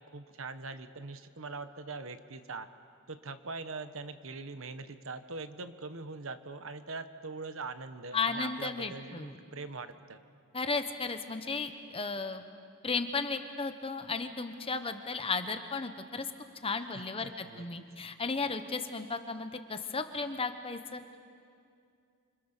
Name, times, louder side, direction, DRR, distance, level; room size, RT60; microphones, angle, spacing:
voice 1, 0.0-2.7 3.1-10.2 16.9-17.7, right 3 dB, 65° right, 10 dB, 1.2 m, -42 dB
voice 2, 8.1-9.4 10.5-12.4 12.8-16.3 16.6-21.0, left 4 dB, 25° left, 8 dB, 1.2 m, -34 dB
28.5 x 26.0 x 6.7 m, 2.3 s
head